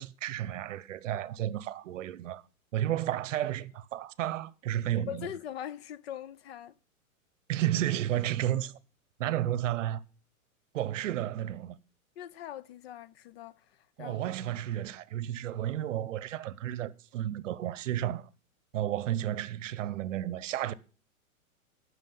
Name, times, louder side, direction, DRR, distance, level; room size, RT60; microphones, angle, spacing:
voice 1, 0.0-2.4 2.7-5.3 7.5-8.7 9.2-10.0 10.7-11.8 14.0-18.3 18.7-20.7, right 12 dB, 60° right, 0.8 m, -32 dB
voice 2, 4.9-6.8 12.2-14.2, left 10 dB, 45° left, 0.6 m, -42 dB
14.5 x 6.4 x 5.5 m
hypercardioid pair, 145°, 43 cm